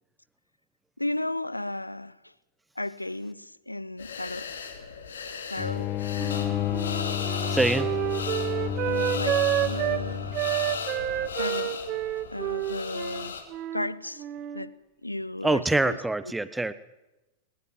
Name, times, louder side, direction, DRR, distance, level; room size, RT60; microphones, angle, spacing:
voice 1, 1.0-2.3 2.8-4.7 5.5-5.9 8.8-10.4 11.4-11.8 12.3-13.4 13.7-14.3 14.5-14.7 15.0-16.0, left 1 dB, 85° left, 20 dB, 0.8 m, -34 dB
sound 1, 4.0-13.4, left 6 dB, 70° left, 3.4 m, -36 dB
sound 2, 5.6-10.9, left 10 dB, 35° left, 1.1 m, -31 dB
Wind instrument woodwind instrument, 6.2-10.0 10.3-13.9 14.2-14.7, right 13 dB, 35° right, 1.8 m, -29 dB
voice 2, 7.4-7.9 15.4-16.7, right 2 dB, 5° right, 16 dB, 1.2 m, -25 dB
23.0 x 20.0 x 7.7 m, 1.0 s
figure-of-eight pair, 90°, 0 cm